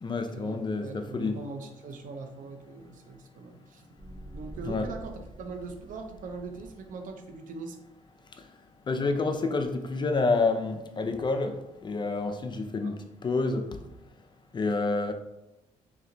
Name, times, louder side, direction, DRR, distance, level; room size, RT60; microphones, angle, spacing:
voice 1, 0.0-1.4 4.7-4.9 8.9-13.8 14.5-15.1, left 3 dB, 35° left, 6 dB, 0.5 m, -28 dB
voice 2, 0.8-3.9 4.3-7.8 12.8-13.0, right 4 dB, 75° right, 5 dB, 0.6 m, -41 dB
sound 1, 4.0-7.1, right 1 dB, 35° right, 0.9 m, -46 dB
3.3 x 3.1 x 3.8 m, 0.93 s
cardioid pair, 80°, 14 cm